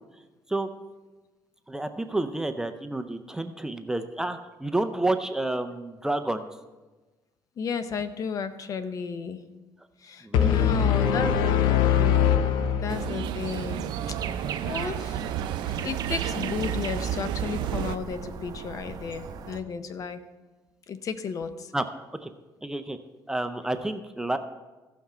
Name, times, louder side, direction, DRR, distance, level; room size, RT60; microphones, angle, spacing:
voice 1, 1.7-6.5 10.2-11.7 21.7-21.8 22.2-22.3 22.6-23.0 23.3-24.4, right 2 dB, 5° right, 7 dB, 0.5 m, -30 dB
voice 2, 7.6-9.4 10.0-11.6 12.0-12.1 12.7-14.2 14.6-15.4 15.6-20.2 20.9-21.7, left 6 dB, 45° left, 11 dB, 0.6 m, -33 dB
sound 1, 10.3-13.4, left 9 dB, 90° left, 0.6 m, -22 dB
sound 2, 12.9-18.0, right 10 dB, 80° right, 0.4 m, -31 dB
sound 3, 13.4-19.6, right 6 dB, 55° right, 0.8 m, -38 dB
15.0 x 5.9 x 4.3 m, 1.2 s
cardioid pair, 120°, 8 cm